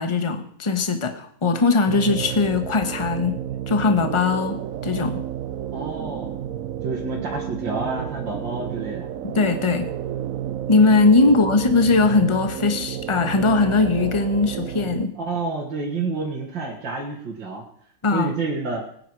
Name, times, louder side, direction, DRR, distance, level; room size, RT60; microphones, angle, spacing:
voice 1, 0.0-3.4 3.7-5.2 9.2-9.9 10.7-15.1 18.0-18.3, left 3 dB, 20° left, 7 dB, 1.0 m, -20 dB
sound 1, 1.9-15.1, right 10 dB, 90° right, 0.7 m, -31 dB
voice 2, 5.7-6.3 6.8-9.1 11.3-11.4 15.1-17.6 18.1-18.9, right 3 dB, 65° right, -3 dB, 2.7 m, -29 dB
20.0 x 9.4 x 4.8 m, 0.63 s
omnidirectional pair, 2.2 m